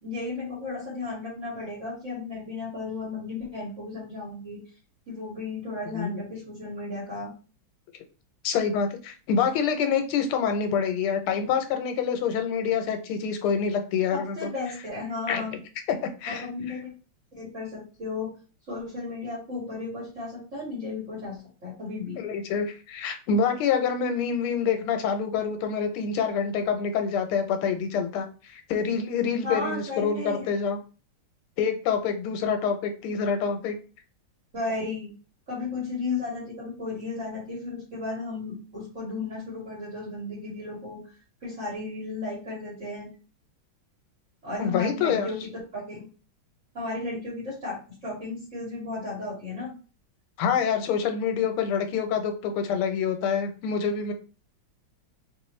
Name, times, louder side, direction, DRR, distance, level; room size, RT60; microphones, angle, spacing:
voice 1, 0.0-4.6 5.1-7.3 14.1-15.6 16.3-16.9 17.3-18.3 18.7-22.2 29.4-30.5 34.5-35.1 35.5-41.0 41.4-43.1 44.4-46.0 46.7-49.7, left 3 dB, 35° right, -9 dB, 2.2 m, -34 dB
voice 2, 5.9-6.3 8.4-14.5 15.3-15.4 16.2-16.5 22.2-30.8 31.6-33.8 44.6-45.3 50.4-54.1, left 6 dB, 85° left, 7 dB, 1.6 m, -26 dB
3.9 x 3.1 x 3.1 m, 0.35 s
omnidirectional pair, 2.3 m